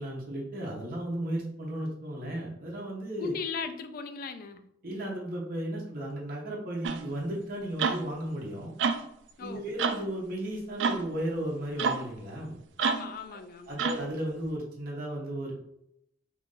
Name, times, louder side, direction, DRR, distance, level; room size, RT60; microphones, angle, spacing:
voice 1, 0.0-3.3 4.8-8.7 9.4-12.6 13.7-15.5, right 1 dB, 55° right, -3 dB, 0.8 m, -35 dB
voice 2, 3.2-4.7 9.4-9.7 12.8-13.9, left 5 dB, 55° left, 8 dB, 0.4 m, -37 dB
sound 1, 6.8-7.0 7.8-8.0 8.8-9.0 9.8-10.0 10.8-11.0 11.8-12.0 12.8-13.1 13.8-14.1, right 5 dB, 75° right, 0.3 m, -28 dB
2.8 x 2.5 x 3.7 m, 0.77 s
head